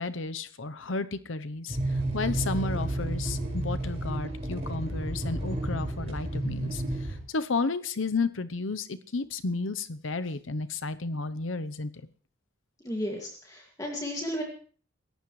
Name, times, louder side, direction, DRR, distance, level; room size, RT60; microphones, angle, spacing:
voice 1, 0.0-11.9, left 3 dB, 80° left, 12 dB, 0.9 m, -32 dB
sound 1, 1.7-7.2, right 1 dB, 35° right, 5.3 m, -31 dB
voice 2, 12.8-14.4, equal, 20° left, 0 dB, 2.3 m, -33 dB
27.5 x 14.5 x 3.2 m, 0.43 s
head